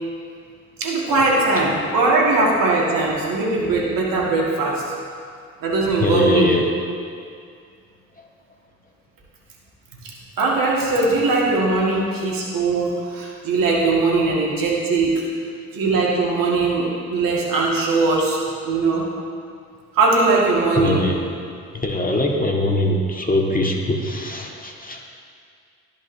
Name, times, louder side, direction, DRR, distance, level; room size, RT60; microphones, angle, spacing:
voice 1, 0.8-4.8 5.6-6.5 10.4-15.2 15.7-18.4 18.7-19.0 19.9-21.1, right 3 dB, 65° right, -3 dB, 1.9 m, -20 dB
voice 2, 6.0-6.7 20.8-21.2 21.7-25.0, left 1 dB, 25° left, 0 dB, 1.6 m, -22 dB
13.5 x 5.3 x 2.7 m, 2.3 s
hypercardioid pair, 40°, 36 cm